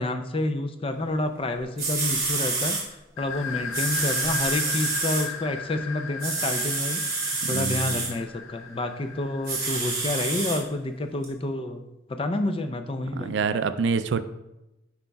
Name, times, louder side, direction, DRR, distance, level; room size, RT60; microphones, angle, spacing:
voice 1, 0.0-11.8 12.1-13.4, left 2 dB, 25° left, 7 dB, 0.4 m, -29 dB
sound 1, 1.5-1.6 1.8-2.8 3.7-5.3 6.2-8.1 9.4-10.6 11.2-11.3, right 3 dB, 20° right, 1.8 m, -28 dB
sound 2, 3.2-10.6, left 7 dB, 85° left, 0.5 m, -37 dB
voice 2, 7.4-8.1 13.1-14.2, right 5 dB, 65° right, 11 dB, 0.3 m, -27 dB
9.1 x 4.7 x 2.2 m, 0.94 s
head